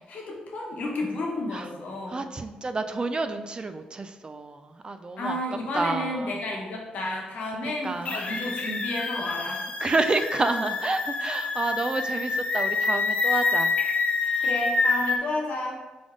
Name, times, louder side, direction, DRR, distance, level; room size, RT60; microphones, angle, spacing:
voice 1, 0.0-2.3 5.2-9.6 14.4-15.8, left 1 dB, 65° left, -1 dB, 1.1 m, -31 dB
voice 2, 2.1-5.4 5.7-6.3 7.6-8.1 9.8-13.7 14.2-14.5, right 3 dB, 35° right, 8 dB, 0.4 m, -29 dB
sound 1, 8.0-15.2, left 4 dB, 50° left, 0.7 m, -27 dB
3.8 x 3.4 x 3.7 m, 1.2 s
supercardioid pair, 60°, 3 cm